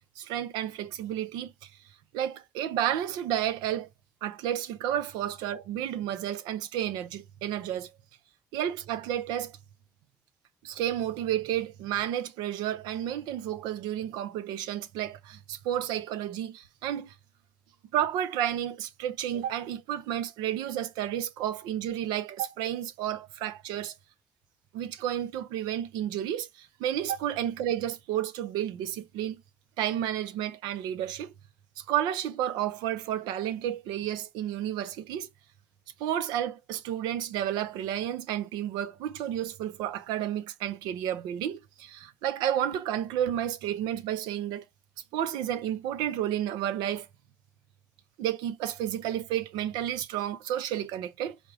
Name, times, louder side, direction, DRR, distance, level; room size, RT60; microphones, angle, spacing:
voice 1, 0.2-1.7 2.1-3.9 4.2-7.9 8.5-9.6 10.6-17.1 17.9-23.9 24.7-29.4 29.8-31.3 31.8-35.3 36.0-44.6 45.1-47.1 48.2-51.4, right 11 dB, 80° right, 0.4 m, -31 dB
4.6 x 2.1 x 4.7 m
hypercardioid pair, 50°, 7 cm